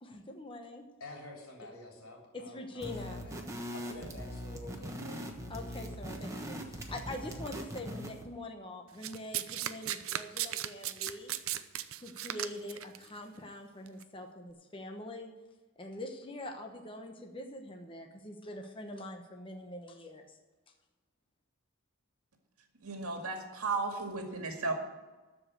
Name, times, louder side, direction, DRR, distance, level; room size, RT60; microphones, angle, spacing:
voice 1, 0.0-0.8 2.3-3.2 5.5-11.3 12.0-15.3 15.8-20.4, left 1 dB, 25° left, 3 dB, 1.0 m, -44 dB
voice 2, 1.0-5.3, left 2 dB, 70° left, -2 dB, 3.8 m, -49 dB
sound 1, 2.8-8.3, equal, 15° right, 1.2 m, -41 dB
Domestic sounds home sounds, 9.0-13.0 13.9-14.0, right 12 dB, 70° right, 0.6 m, -36 dB
voice 3, 22.8-24.7, right 3 dB, 90° right, 3 dB, 2.1 m, -34 dB
13.5 x 5.2 x 8.9 m, 1.2 s
head